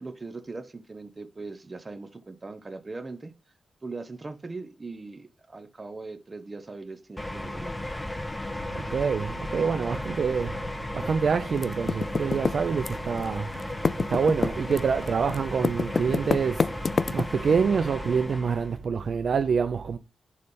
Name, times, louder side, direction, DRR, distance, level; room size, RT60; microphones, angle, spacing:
voice 1, 0.0-3.3 3.8-7.9, right 3 dB, 30° right, 0.9 m, -40 dB
sound 1, 7.2-18.8, left 1 dB, 10° left, 0.7 m, -35 dB
voice 2, 8.7-10.6 10.9-13.7 14.1-20.0, right 6 dB, 60° right, 0.4 m, -26 dB
Typing, 11.6-13.3 13.5-17.6, left 4 dB, 45° left, 0.3 m, -27 dB
6.9 x 3.3 x 5.3 m
cardioid pair, 80°, 0 cm